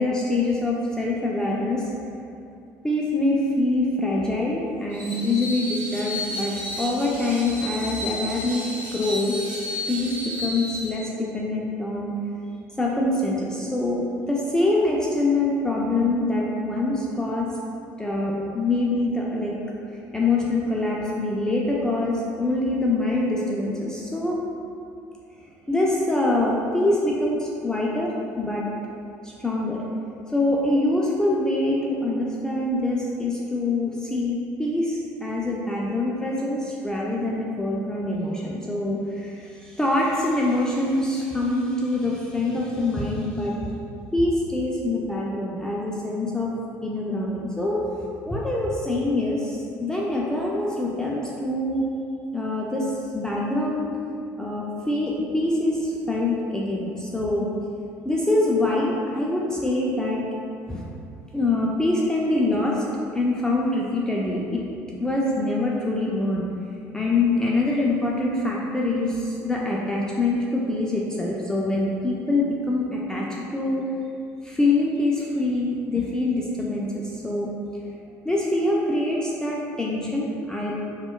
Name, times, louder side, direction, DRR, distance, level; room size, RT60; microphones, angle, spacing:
voice 1, 0.0-1.9 2.8-9.6 9.9-12.2 12.8-17.5 18.0-19.5 20.1-24.4 25.7-28.7 29.2-29.8 30.3-43.5 44.1-46.5 46.8-47.8 48.3-51.8 52.3-53.9 54.4-57.5 58.0-60.2 60.7-60.8 61.3-62.8 63.1-64.6 65.0-66.5 66.9-73.8 74.4-77.5 78.2-80.7, left 2 dB, 10° left, -4 dB, 0.4 m, -24 dB
Screech, 4.9-11.0, left 1 dB, 20° right, 1.2 m, -33 dB
4.1 x 2.2 x 2.3 m, 2.5 s
supercardioid pair, 85°, 7 cm